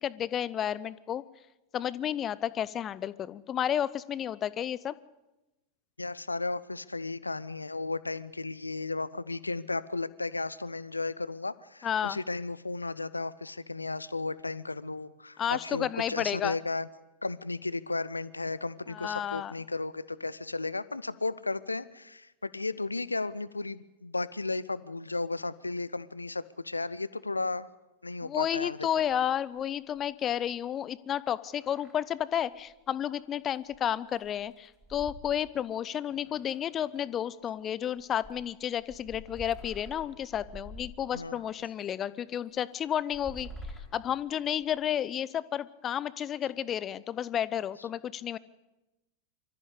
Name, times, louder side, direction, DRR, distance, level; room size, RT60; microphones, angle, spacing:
voice 1, 0.0-1.2 1.7-4.9 11.8-12.2 15.4-16.6 18.9-19.5 28.2-43.5 43.9-48.4, left 10 dB, 25° left, 18 dB, 0.7 m, -32 dB
voice 2, 6.0-16.9 17.2-27.7 28.0-28.9 41.1-41.4, left 3 dB, 80° left, 18 dB, 0.6 m, -34 dB
sound 1, 28.8-29.2 29.6-29.7 30.0-30.1 31.4-32.1 32.4-32.5 33.7-33.8 34.1-35.7 36.1-37.1 38.0-41.5 42.1-42.2 42.9-44.9, left 1 dB, 10° right, 5.0 m, -48 dB
25.0 x 14.0 x 8.2 m, 1.0 s
figure-of-eight pair, 90°, 0 cm